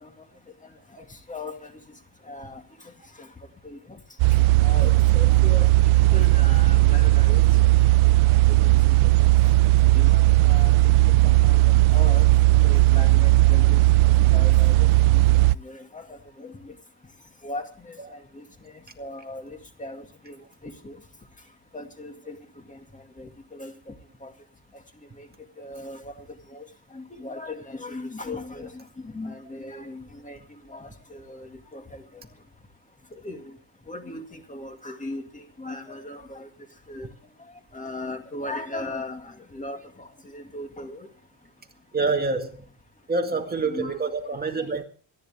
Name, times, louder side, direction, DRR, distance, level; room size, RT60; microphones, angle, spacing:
voice 1, 1.3-1.7 2.3-2.6 3.2-3.3 3.6-4.0 4.6-5.7 6.1-7.4 8.6-9.0 9.8-10.7 11.0-11.6 11.9-12.3 12.6-13.8 14.1-14.9 15.1-15.2 15.6-16.7 17.4-20.4 20.6-21.0 21.7-22.4 22.7-22.8 23.2-23.7 24.2-24.3 25.2-25.3 25.6-26.1 26.5-26.7 26.9-30.4 30.7-32.0 33.1-33.5 33.9-36.5 36.9-37.1 37.7-41.1 43.6-44.7, left 2 dB, 15° left, 2.1 m, -38 dB
sound 1, 4.2-15.5, right 18 dB, 85° right, 0.6 m, -17 dB
voice 2, 41.9-42.7 43.1-44.8, right 3 dB, 20° right, 2.0 m, -26 dB
26.0 x 10.0 x 3.6 m
cardioid pair, 145°, 48 cm